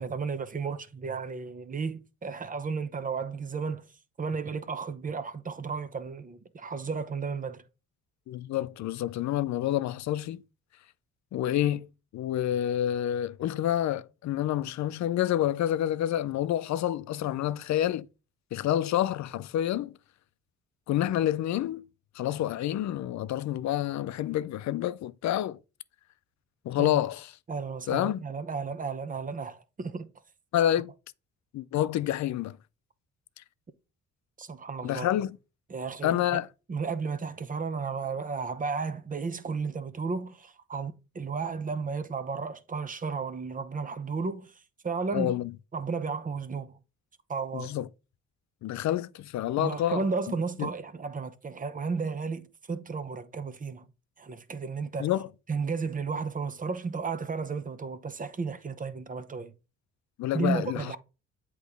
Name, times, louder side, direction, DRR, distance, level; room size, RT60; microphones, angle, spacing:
voice 1, 0.0-3.9 4.2-7.6 26.8-27.0 27.5-30.1 34.4-35.1 35.7-36.4 36.7-44.5 44.8-45.3 45.7-46.7 47.3-47.7 49.6-53.8 54.2-55.1 55.5-59.5 60.3-61.0, right 5 dB, 25° right, 0.8 m, -33 dB
voice 2, 8.3-10.4 11.3-11.9 12.1-18.1 18.5-19.9 20.9-21.8 22.2-25.6 26.6-27.3 27.9-28.2 30.5-30.9 31.5-32.6 34.8-35.4 36.0-36.5 45.1-45.5 47.5-47.9 48.6-50.0 50.6-50.7 55.0-55.3 60.2-61.0, left 12 dB, 65° left, 0.5 m, -28 dB
8.1 x 3.1 x 5.2 m
cardioid pair, 90°, 30 cm